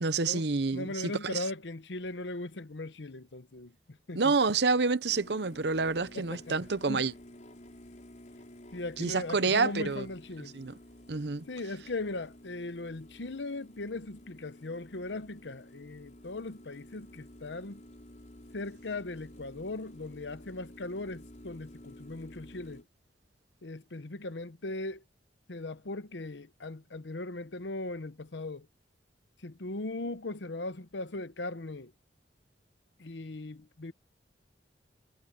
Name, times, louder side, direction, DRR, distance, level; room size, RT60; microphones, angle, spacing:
voice 1, 0.0-1.4 4.1-7.1 9.0-10.1 10.5-10.8 11.1-11.4, right 4 dB, 65° right, 0.8 m, -28 dB
voice 2, 0.7-4.3 6.1-6.5 6.9-7.1 8.7-10.5 11.5-17.8 18.5-22.8 23.6-25.0 25.5-28.7 29.4-31.9 33.0-33.9, left 2 dB, 80° left, 1.0 m, -39 dB
sound 1, 5.1-22.8, left 1 dB, 45° left, 5.6 m, -52 dB
head